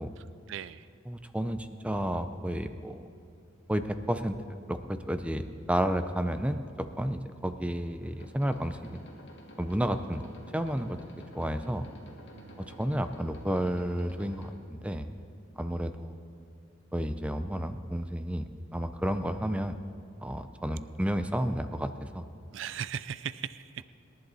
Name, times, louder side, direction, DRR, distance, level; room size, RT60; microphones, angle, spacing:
voice 1, 0.2-0.9 12.3-13.0 22.5-23.9, right 8 dB, 65° right, 15 dB, 0.4 m, -39 dB
voice 2, 1.1-3.1 3.7-4.4 4.7-9.1 9.6-10.2 10.5-11.0 11.3-11.8 12.7-15.1 15.6-16.1 16.9-19.8 20.2-22.3, equal, 5° right, 9 dB, 0.5 m, -31 dB
sound 1, 8.0-14.5, equal, 55° left, 2.2 m, -51 dB
27.0 x 11.0 x 4.1 m, 2.4 s
head